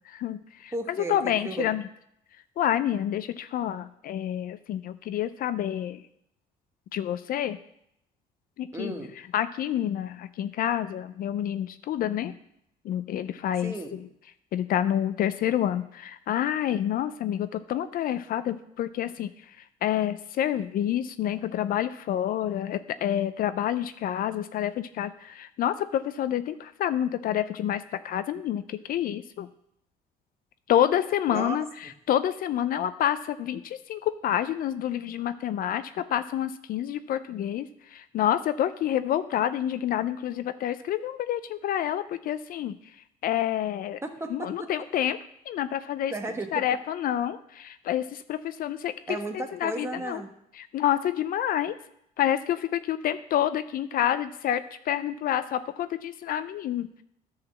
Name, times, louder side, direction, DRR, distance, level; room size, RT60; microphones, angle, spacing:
voice 1, 0.1-0.7 1.1-1.8 2.6-6.0 6.9-7.6 8.6-8.9 9.3-12.3 12.8-13.7 14.5-19.3 19.8-29.5 30.7-31.7 32.1-37.7 37.9-42.8 43.2-44.0 44.3-45.2 45.5-46.1 46.5-48.9 49.3-50.2 50.6-51.7 52.2-57.0, left 11 dB, 60° left, 13 dB, 0.5 m, -28 dB
voice 2, 0.7-1.7 8.7-9.1 13.6-14.0 31.3-31.6 31.8-31.9 44.0-44.7 46.1-46.6 49.1-50.3, right 2 dB, 15° right, 5 dB, 1.2 m, -34 dB
11.0 x 4.0 x 7.2 m, 0.75 s
cardioid pair, 110°, 17 cm